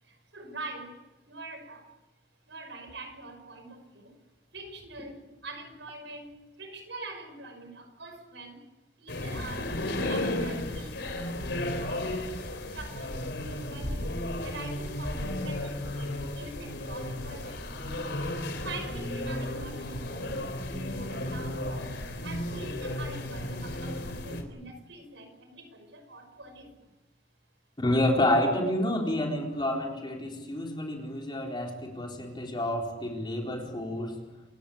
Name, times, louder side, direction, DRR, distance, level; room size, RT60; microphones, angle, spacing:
voice 1, 0.3-0.9 1.3-1.8 2.5-4.1 4.5-6.3 6.6-8.6 9.0-9.7 10.1-10.9 11.2-12.0 12.7-14.0 14.4-17.5 18.6-21.9 22.2-24.0 24.2-26.7, right 2 dB, 75° right, 7 dB, 5.8 m, -44 dB
sound 1, 9.1-24.4, left 1 dB, 70° left, 3.7 m, -34 dB
voice 2, 27.8-34.2, left 1 dB, 25° left, 1 dB, 4.0 m, -29 dB
28.0 x 17.0 x 8.6 m, 1.1 s
head